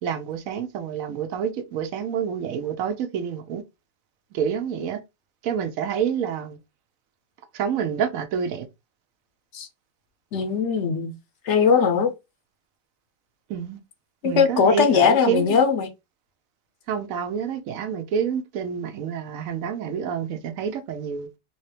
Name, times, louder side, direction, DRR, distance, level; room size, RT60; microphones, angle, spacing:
voice 1, 0.0-3.6 4.3-5.0 5.4-6.6 7.5-8.7 13.5-13.8 14.2-15.6 16.9-21.3, right 7 dB, 80° right, 1.0 m, -28 dB
voice 2, 10.3-11.1 11.4-12.1 14.2-15.9, left 6 dB, 65° left, 0.8 m, -20 dB
3.6 x 2.8 x 3.2 m
omnidirectional pair, 1.4 m